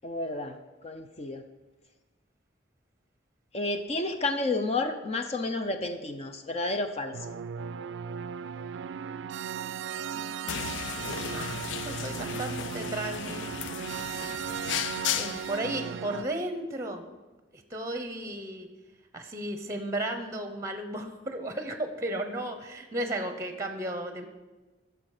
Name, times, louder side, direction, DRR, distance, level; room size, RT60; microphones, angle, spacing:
voice 1, 0.0-0.6 0.8-1.4 3.5-7.2, left 2 dB, 35° left, 7 dB, 0.6 m, -31 dB
sound 1, 7.1-16.2, right 7 dB, 75° right, 0.4 m, -36 dB
voice 2, 10.1-10.8 11.3-11.5 11.8-13.5 15.2-17.0 17.7-18.7 19.1-24.3, right 1 dB, 15° right, 7 dB, 0.9 m, -34 dB
sound 2, 10.5-15.6, left 10 dB, 75° left, 0.3 m, -35 dB
13.0 x 6.8 x 4.9 m, 1.2 s
head